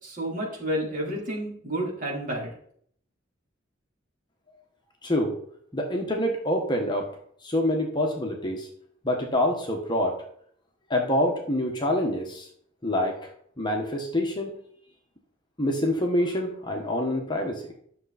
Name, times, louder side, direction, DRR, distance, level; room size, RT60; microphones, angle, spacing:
voice 1, 0.0-2.5, right 1 dB, 40° right, -4 dB, 3.9 m, -30 dB
voice 2, 5.0-5.4 5.7-7.1 7.4-8.7 9.0-10.2 10.9-12.5 12.8-13.2 13.6-14.5 15.6-17.6, left 1 dB, 25° left, 2 dB, 1.4 m, -26 dB
11.0 x 6.7 x 4.3 m, 0.63 s
head